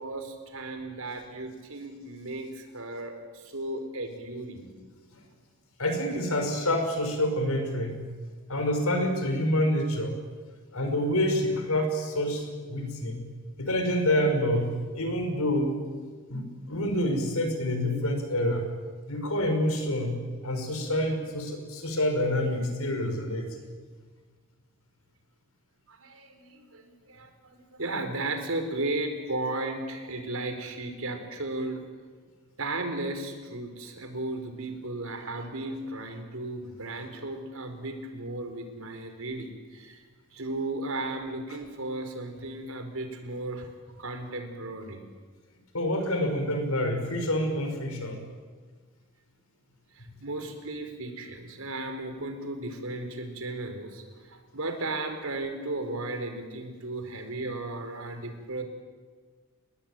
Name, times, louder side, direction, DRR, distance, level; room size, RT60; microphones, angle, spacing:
voice 1, 0.0-4.7 25.9-31.8 32.6-40.0 40.3-43.7 44.0-45.0 50.0-58.6, right 2 dB, 70° right, 6 dB, 4.5 m, -35 dB
voice 2, 5.8-8.0 8.5-10.1 10.7-13.2 13.6-15.8 16.3-18.6 19.1-23.6 45.7-48.2, left 1 dB, 75° left, 5 dB, 6.1 m, -27 dB
29.0 x 21.0 x 9.1 m, 1.5 s
head